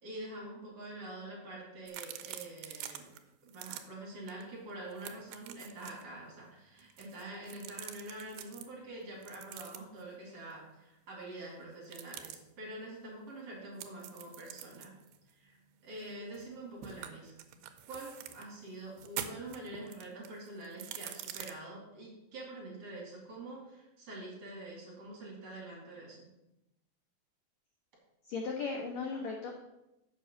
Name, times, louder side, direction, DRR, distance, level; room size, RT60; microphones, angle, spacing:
voice 1, 0.0-3.1 3.4-14.9 15.3-15.6 15.8-17.3 17.9-26.3, right 2 dB, 45° right, -4 dB, 3.6 m, -46 dB
sound 1, 1.9-3.2 3.5-3.8 4.3-4.4 4.7-6.0 6.8-8.7 9.2-10.0 11.8-12.4 13.8-16.5 16.8-18.5 18.9-21.5, right 11 dB, 85° right, 2.6 m, -45 dB
voice 2, 28.2-29.5, left 4 dB, 75° left, 1 dB, 1.7 m, -36 dB
7.6 x 5.5 x 6.8 m, 0.92 s
omnidirectional pair, 4.4 m